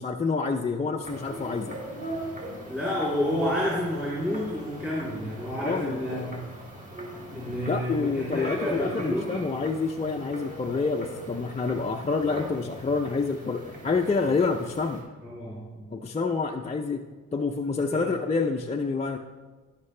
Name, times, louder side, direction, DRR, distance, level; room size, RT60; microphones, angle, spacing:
voice 1, 0.0-1.8 5.6-6.0 7.6-15.0 15.9-17.0 17.3-19.2, left 4 dB, 20° left, 1 dB, 0.6 m, -28 dB
sound 1, 1.0-15.0, right 1 dB, 25° right, 3.1 m, -40 dB
voice 2, 2.6-6.4 7.3-9.3 15.2-15.9 17.9-18.1, left 1 dB, 5° right, -9 dB, 3.3 m, -30 dB
17.5 x 5.9 x 3.3 m, 1.3 s
cardioid pair, 90°, 30 cm